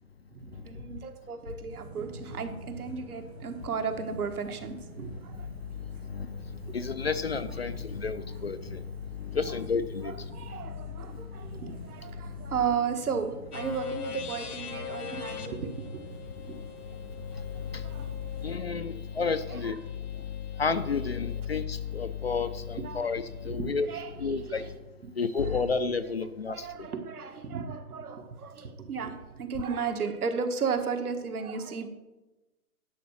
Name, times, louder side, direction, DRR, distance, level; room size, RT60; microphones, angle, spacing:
voice 1, 0.3-5.5 6.7-6.8 10.0-16.2 16.5-16.6 17.8-18.7 19.5-19.7 22.8-23.1 23.4-24.7 25.0-25.1 26.5-31.9, right 6 dB, 70° right, 6 dB, 1.5 m, -35 dB
sound 1, 1.7-18.6, right 1 dB, 15° right, 0.7 m, -46 dB
voice 2, 6.7-8.8 9.2-10.1 17.7-17.8 18.4-19.8 20.6-23.9 24.2-24.6 25.2-26.7, left 5 dB, 45° left, 12 dB, 0.4 m, -30 dB
sound 2, 13.5-21.4, left 9 dB, 75° left, 1.4 m, -43 dB
10.5 x 4.7 x 7.0 m, 1.1 s
hypercardioid pair, 160°, 46 cm